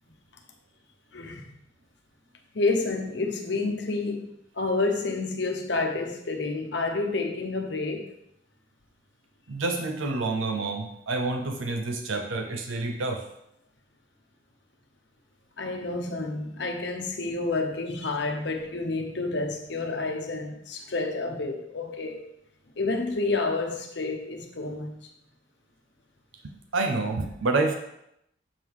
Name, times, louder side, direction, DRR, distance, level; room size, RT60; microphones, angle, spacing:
voice 1, 1.1-1.4 2.5-8.1 15.6-22.2 22.8-24.9, left 3 dB, 65° left, 0.9 m, -29 dB
voice 2, 9.5-13.3 26.4-27.7, right 3 dB, 90° right, 0.7 m, -28 dB
7.4 x 3.6 x 4.8 m
head